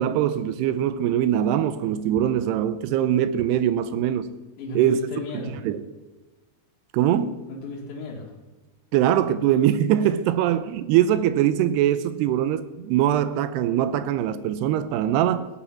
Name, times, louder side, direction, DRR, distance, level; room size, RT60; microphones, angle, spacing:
voice 1, 0.0-4.3 4.8-5.0 5.3-5.8 6.9-7.4 8.9-15.5, right 11 dB, 85° right, 2.6 m, -22 dB
voice 2, 4.6-5.6 7.5-8.3 10.0-10.1, left 2 dB, 85° left, 4.0 m, -34 dB
17.5 x 9.2 x 5.7 m
omnidirectional pair, 4.9 m